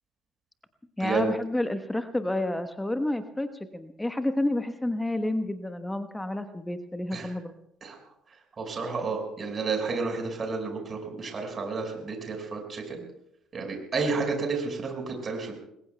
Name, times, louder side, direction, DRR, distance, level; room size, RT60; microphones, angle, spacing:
voice 1, 1.0-7.5, left 1 dB, 10° left, 10 dB, 1.2 m, -30 dB
voice 2, 8.6-13.0 13.5-15.5, right 4 dB, 35° right, 2 dB, 5.4 m, -31 dB
29.0 x 21.5 x 2.3 m, 0.77 s
figure-of-eight pair, 50°, 0 cm